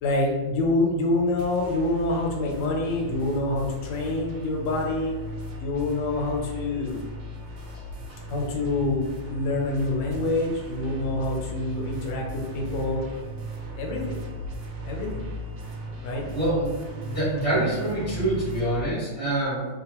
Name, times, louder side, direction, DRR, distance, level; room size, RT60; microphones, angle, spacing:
voice 1, 0.0-5.1 5.6-7.0 8.3-13.0 13.8-14.2 14.8-15.3 16.0-16.3, left 2 dB, 80° left, 0 dB, 1.3 m, -26 dB
sound 1, 1.4-18.8, left 1 dB, 70° right, 0.9 m, -37 dB
voice 2, 16.3-19.7, right 1 dB, 25° right, -10 dB, 0.7 m, -26 dB
2.9 x 2.2 x 2.9 m, 1.3 s
omnidirectional pair, 2.0 m